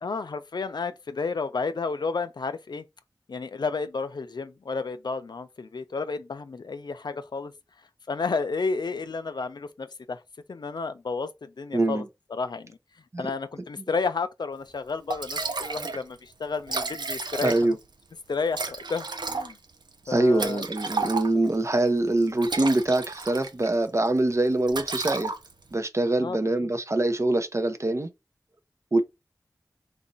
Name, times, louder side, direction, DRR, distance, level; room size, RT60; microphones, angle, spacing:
voice 1, 0.0-2.8 3.3-7.5 8.1-10.2 10.5-12.0 12.3-12.8 13.2-17.6 18.3-19.6 20.1-20.6 26.2-26.7, left 4 dB, 80° left, 0.4 m, -31 dB
voice 2, 11.7-12.0 13.1-13.2 15.8-15.9 17.4-17.8 20.1-25.3 25.7-28.1 28.9-29.0, right 2 dB, 40° right, 0.6 m, -24 dB
Liquid, 14.7-14.8 15.1-16.0 16.3-16.4 16.6-17.9 18.5-21.6 22.2-23.7 24.1-24.3 24.7-25.7, right 3 dB, 85° right, 0.5 m, -32 dB
4.0 x 2.3 x 3.8 m
wide cardioid pair, 55°, 7 cm